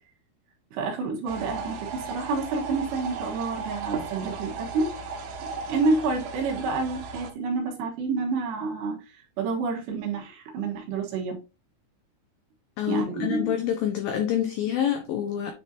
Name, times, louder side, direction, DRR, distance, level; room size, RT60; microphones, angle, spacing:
voice 1, 0.7-4.9 5.4-9.0 9.4-11.4 12.9-13.6, right 4 dB, 70° right, 3.5 m, -28 dB
sound 1, 1.3-7.3, right 4 dB, 90° right, 3.5 m, -36 dB
voice 2, 12.8-15.5, left 10 dB, 90° left, 2.0 m, -27 dB
9.4 x 4.4 x 2.7 m
omnidirectional pair, 5.2 m